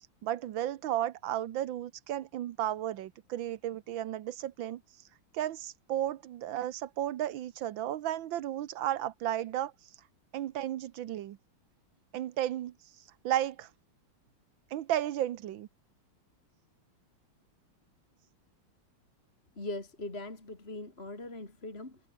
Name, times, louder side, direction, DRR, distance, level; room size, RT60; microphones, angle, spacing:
voice 1, 0.2-4.8 5.3-9.7 10.3-11.4 12.1-12.7 13.2-13.7 14.7-15.7, right 12 dB, 65° right, 1.5 m, -33 dB
voice 2, 19.6-22.0, left 2 dB, 25° left, 3.8 m, -40 dB
omnidirectional pair, 2.4 m